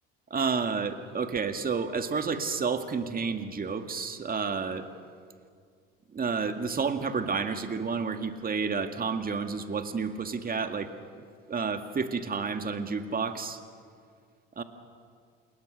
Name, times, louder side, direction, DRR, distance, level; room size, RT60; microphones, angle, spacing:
voice 1, 0.3-4.9 6.1-10.9 11.5-13.6 14.6-14.7, right 5 dB, 30° right, 7 dB, 2.1 m, -30 dB
28.0 x 21.5 x 6.6 m, 2.1 s
hypercardioid pair, 80°, 29 cm